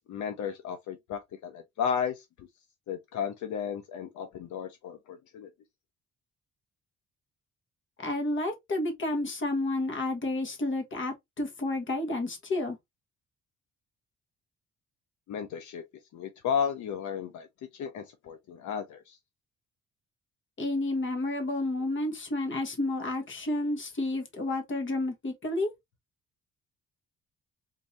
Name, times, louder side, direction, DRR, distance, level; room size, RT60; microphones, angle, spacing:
voice 1, 0.1-2.5 2.9-5.5 15.3-15.8 16.1-17.5 17.7-19.2, left 7 dB, 75° left, 0.7 m, -34 dB
voice 2, 8.0-12.8 20.6-25.7, left 2 dB, 40° left, 1.5 m, -30 dB
3.7 x 2.8 x 3.1 m
cardioid pair, 90°, 30 cm